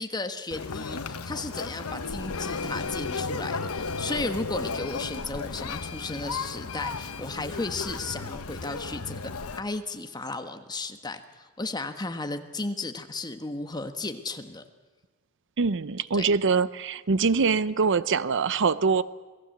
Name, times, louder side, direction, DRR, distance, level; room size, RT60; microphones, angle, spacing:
voice 1, 0.0-14.6 16.1-16.3, left 3 dB, 20° left, 1.4 m, -34 dB
Conversation, 0.5-9.6, left 4 dB, 90° left, 1.2 m, -35 dB
Printer, 2.3-7.3, left 4 dB, 65° left, 1.0 m, -37 dB
voice 2, 15.6-19.0, right 5 dB, 60° right, 0.7 m, -24 dB
27.5 x 18.5 x 7.8 m
head